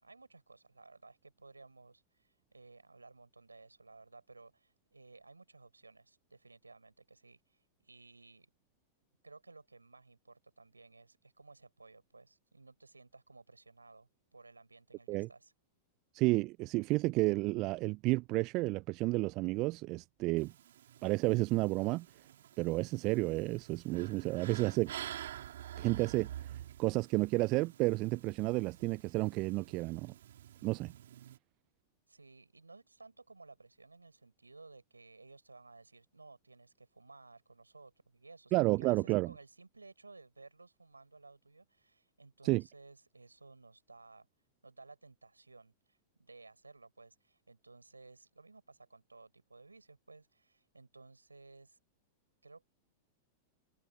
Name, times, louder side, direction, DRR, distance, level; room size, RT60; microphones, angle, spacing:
voice 1, 0.0-8.5 9.2-15.5 32.1-44.3 44.6-51.8 52.4-52.6, right 3 dB, 85° right, 6.4 m, -57 dB
voice 2, 16.1-20.5 21.0-22.1 22.6-24.9 25.8-26.3 26.8-30.1 30.6-30.9 38.5-39.3 42.4-42.6, right 22 dB, 40° right, 0.5 m, -31 dB
sound 1, 20.4-31.4, right 11 dB, 65° right, 4.6 m, -49 dB
figure-of-eight pair, 95°, 0 cm